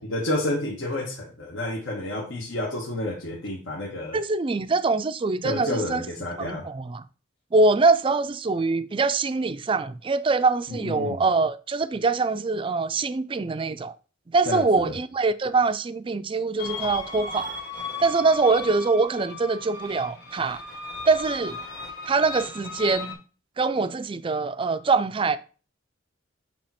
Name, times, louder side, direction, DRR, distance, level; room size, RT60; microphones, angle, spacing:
voice 1, 0.1-4.2 5.4-6.7 10.7-11.2 14.4-15.0, left 1 dB, 80° left, 1.5 m, -30 dB
voice 2, 4.1-6.1 6.4-7.0 7.5-13.9 14.3-17.5 18.0-20.6 21.0-21.6 22.1-23.2 23.6-25.4, right 3 dB, 25° right, 0.4 m, -23 dB
sound 1, 16.6-23.1, left 3 dB, 60° left, 2.8 m, -36 dB
8.6 x 2.9 x 4.3 m
head